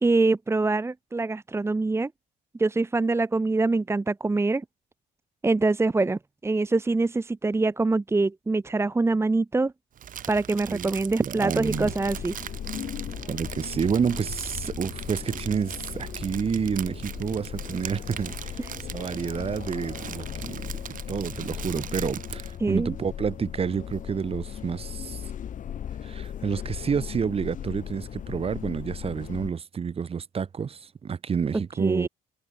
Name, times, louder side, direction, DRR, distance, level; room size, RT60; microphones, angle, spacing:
voice 1, 0.0-2.1 2.6-4.6 5.4-9.7 10.3-12.3 18.6-18.7 22.6-22.9 31.8-32.1, right 3 dB, 15° right, 1.4 m, -24 dB
Crumpling crinkling, 10.0-22.6, right 10 dB, 55° right, 4.4 m, -40 dB
voice 2, 11.2-11.9 13.3-20.7 21.1-25.2 26.0-32.1, right 6 dB, 35° right, 2.5 m, -29 dB
sound 1, 11.6-29.5, left 9 dB, 50° left, 4.8 m, -37 dB
cardioid pair, 110°, 17 cm